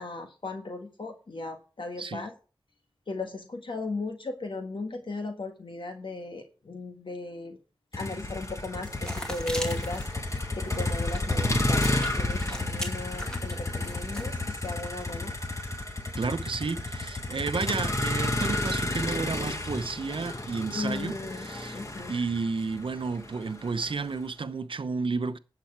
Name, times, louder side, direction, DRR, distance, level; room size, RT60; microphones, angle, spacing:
voice 1, 0.0-2.3 3.1-7.6 7.9-10.0 10.5-15.3 20.7-22.1, left 2 dB, 75° left, 1.6 m, -36 dB
Motor vehicle (road), 7.9-24.0, left 2 dB, 35° left, 1.7 m, -31 dB
sound 1, 8.7-14.4, equal, 10° left, 2.4 m, -41 dB
voice 2, 16.2-21.8 22.1-25.4, right 4 dB, 85° right, 0.7 m, -32 dB
11.5 x 7.7 x 4.7 m
wide cardioid pair, 60°, 9 cm